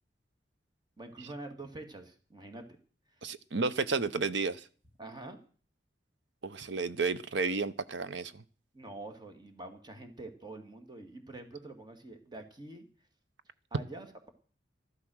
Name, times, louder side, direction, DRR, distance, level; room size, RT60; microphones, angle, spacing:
voice 1, 1.0-2.7 5.0-5.4 8.7-12.8 13.7-14.3, right 2 dB, 25° right, 2.2 m, -46 dB
voice 2, 3.2-4.6 6.4-8.4, right 4 dB, 75° right, 0.8 m, -32 dB
13.5 x 12.5 x 6.3 m
head